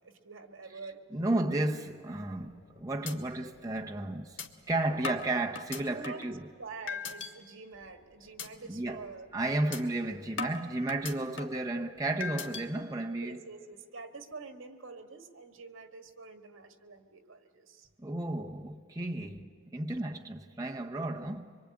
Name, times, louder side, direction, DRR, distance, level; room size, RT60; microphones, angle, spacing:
voice 1, 0.0-1.0 2.9-3.2 5.9-6.2 6.6-9.3 9.6-9.7 13.2-17.9 19.2-19.5, right 4 dB, 75° right, 1.7 m, -47 dB
voice 2, 1.1-4.4 4.7-6.5 8.7-9.1 9.3-13.4 18.0-19.4 19.7-21.6, right 2 dB, 15° right, 0.8 m, -33 dB
sound 1, 2.4-2.7 3.1-3.2 3.6-3.7 4.4-4.5 5.0-6.3 6.9-7.3 7.7-8.0 8.4-8.5 8.9-9.1 9.7-9.8 10.4-11.6 12.2-12.6, left 5 dB, 65° left, 1.5 m, -38 dB
25.0 x 23.0 x 8.6 m
head